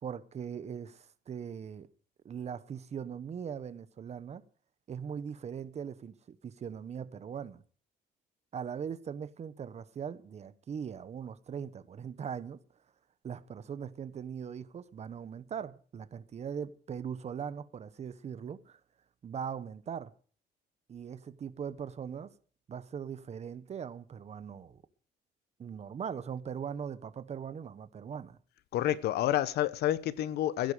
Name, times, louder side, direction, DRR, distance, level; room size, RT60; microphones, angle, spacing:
voice 1, 0.0-1.9 2.2-4.4 4.9-7.6 8.5-12.6 13.2-18.8 19.2-20.1 20.9-22.3 22.7-24.8 25.6-28.4, right 7 dB, 40° right, 1.2 m, -40 dB
voice 2, 28.7-30.7, left 13 dB, 75° left, 1.1 m, -29 dB
17.0 x 10.5 x 5.0 m
cardioid pair, 110°, 17 cm